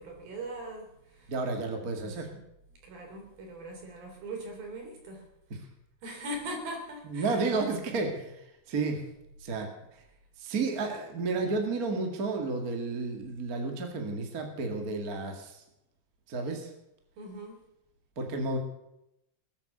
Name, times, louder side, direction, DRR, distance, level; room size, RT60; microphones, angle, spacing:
voice 1, 0.0-1.4 2.0-2.4 2.8-5.2 5.5-5.6 6.0-7.4 17.2-17.6, right 1 dB, 60° right, 2 dB, 5.3 m, -41 dB
voice 2, 1.3-2.3 7.1-8.4 8.7-9.0 9.4-9.7 10.4-15.6 16.3-16.7 18.2-18.6, right 3 dB, 30° right, 3 dB, 1.8 m, -31 dB
21.0 x 9.1 x 6.9 m, 0.84 s
omnidirectional pair, 4.9 m